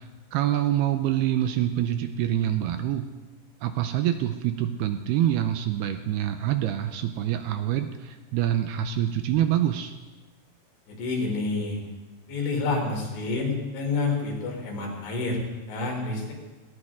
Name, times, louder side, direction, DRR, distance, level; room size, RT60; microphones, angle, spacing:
voice 1, 0.0-3.1 3.6-9.9, right 11 dB, 80° right, 8 dB, 2.3 m, -26 dB
voice 2, 10.9-11.8 12.3-15.4 15.7-16.3, left 3 dB, 75° left, 0 dB, 5.7 m, -28 dB
19.5 x 18.5 x 3.7 m, 1.2 s
omnidirectional pair, 5.3 m